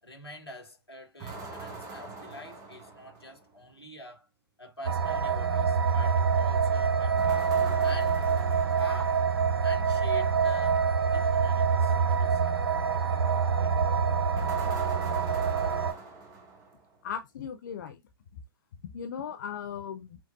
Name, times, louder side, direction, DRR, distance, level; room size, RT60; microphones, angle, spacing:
voice 1, 0.0-4.3 4.6-8.3 8.7-9.3 9.6-12.6, left 2 dB, 90° left, 1.5 m, -46 dB
sound 1, 1.2-3.5 7.2-9.7 14.4-17.0, right 3 dB, 25° right, 1.0 m, -42 dB
sound 2, 4.8-15.9, right 6 dB, 70° right, 0.5 m, -26 dB
voice 2, 17.0-18.0 18.9-20.2, left 7 dB, 50° left, 0.7 m, -37 dB
5.9 x 2.1 x 2.9 m
figure-of-eight pair, 115°, 13 cm